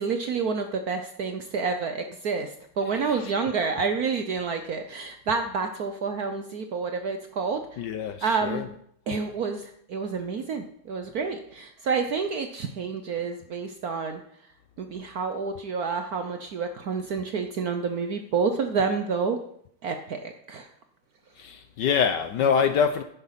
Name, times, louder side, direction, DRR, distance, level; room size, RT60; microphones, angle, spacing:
voice 1, 0.0-7.8 8.2-8.8 9.1-14.2 14.8-19.4 19.8-20.7, right 5 dB, 60° right, 1.0 m, -29 dB
voice 2, 7.8-8.6 21.4-23.0, left 7 dB, 70° left, 1.1 m, -25 dB
10.5 x 9.1 x 5.7 m
omnidirectional pair, 2.4 m